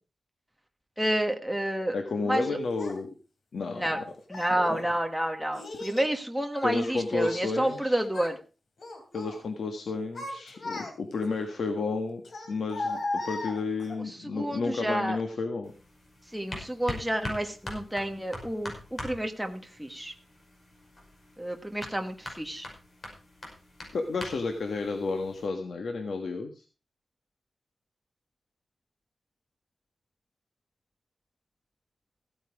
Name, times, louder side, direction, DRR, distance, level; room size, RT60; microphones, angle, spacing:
voice 1, 1.0-2.0 2.2-2.6 3.7-4.0 4.3-8.3 14.1-15.2 16.3-20.1 21.4-22.7, right 1 dB, 5° right, 4 dB, 1.3 m, -30 dB
voice 2, 1.9-3.1 3.5-4.0 4.5-4.8 6.6-8.0 9.1-12.2 12.5-15.7 23.9-26.6, left 4 dB, 80° left, 4 dB, 1.6 m, -32 dB
Child speech kid speaking, 2.8-2.9 3.8-4.6 5.5-6.1 6.5-7.8 8.1-8.4 8.8-9.4 9.9-11.2 12.2-14.0, left 2 dB, 60° left, 3.1 m, -37 dB
sound 1, 15.6-25.5, left 1 dB, 40° left, 5.2 m, -43 dB
15.0 x 9.2 x 4.8 m, 0.35 s
wide cardioid pair, 145°, 0 cm